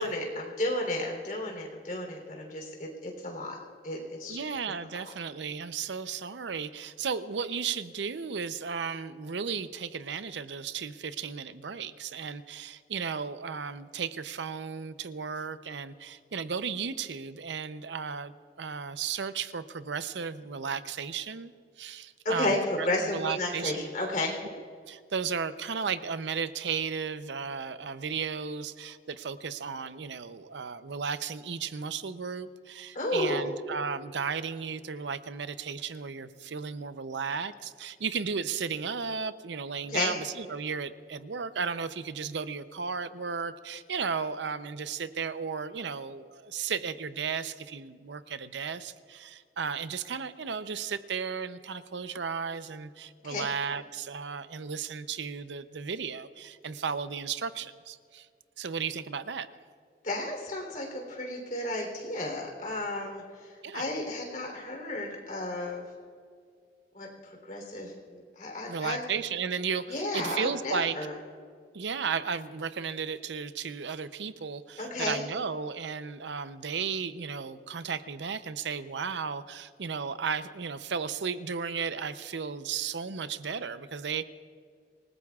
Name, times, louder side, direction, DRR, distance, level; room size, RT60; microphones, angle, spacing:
voice 1, 0.0-3.6 3.8-4.4 22.2-24.3 32.9-33.5 39.9-40.1 53.2-53.5 60.0-65.8 66.9-69.0 69.9-71.1 74.8-75.2, left 1 dB, 45° left, 1 dB, 3.3 m, -33 dB
voice 2, 4.3-18.3 18.6-21.5 21.8-23.9 24.9-58.3 58.6-59.5 63.6-63.9 68.7-71.0 71.7-84.2, right 6 dB, 80° right, 12 dB, 0.6 m, -34 dB
27.0 x 19.5 x 2.4 m, 2.1 s
head